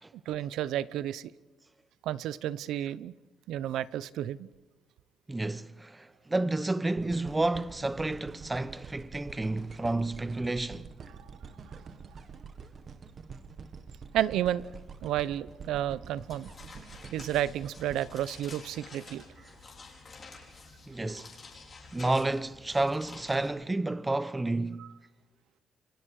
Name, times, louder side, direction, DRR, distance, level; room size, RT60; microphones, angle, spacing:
voice 1, 0.3-1.3 2.0-3.1 3.5-4.5 11.2-11.3 11.7-11.8 14.1-14.6 15.0-16.5 17.1-19.2 24.8-24.9, right 12 dB, 85° right, 0.8 m, -31 dB
voice 2, 5.3-10.9 20.9-21.3 21.9-24.9, right 2 dB, 10° right, 0.8 m, -30 dB
sound 1, 7.0-19.2 19.7-19.8, right 5 dB, 35° right, 1.6 m, -47 dB
sound 2, 16.2-23.5, left 4 dB, 30° left, 5.5 m, -50 dB
29.0 x 24.5 x 4.9 m
cardioid pair, 145°, 0 cm